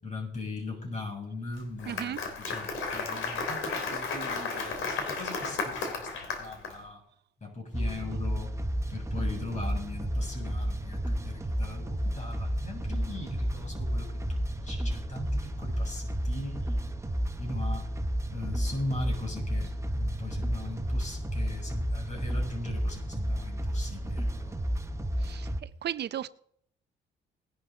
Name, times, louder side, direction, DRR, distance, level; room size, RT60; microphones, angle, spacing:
voice 1, 0.0-3.6 3.9-6.1 6.4-7.0 7.4-8.5 8.9-16.5 17.4-17.9 18.3-19.7 19.9-24.5, left 2 dB, 35° left, 7.3 m, -39 dB
Applause, 1.6-6.7, left 4 dB, 80° left, 3.3 m, -33 dB
voice 2, 1.9-2.2 25.3-25.5 25.8-26.3, right 10 dB, 55° right, 0.6 m, -34 dB
sound 1, 7.7-25.6, equal, 15° right, 1.1 m, -32 dB
19.0 x 11.5 x 3.9 m
cardioid pair, 90°, 20 cm